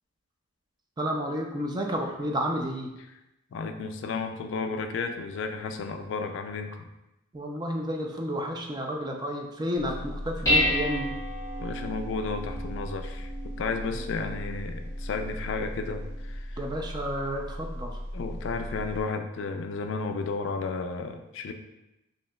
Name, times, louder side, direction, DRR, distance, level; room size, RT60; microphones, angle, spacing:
voice 1, 1.0-2.9 7.3-11.2 13.9-14.0 16.6-18.0, equal, 20° right, 1 dB, 0.4 m, -31 dB
voice 2, 3.5-6.9 11.6-13.3 13.6-16.6 18.1-21.5, left 4 dB, 60° left, 6 dB, 0.3 m, -33 dB
Dishes pots and pans, 9.8-19.0, equal, 15° left, 0.8 m, -32 dB
5.1 x 2.8 x 2.2 m, 0.93 s
head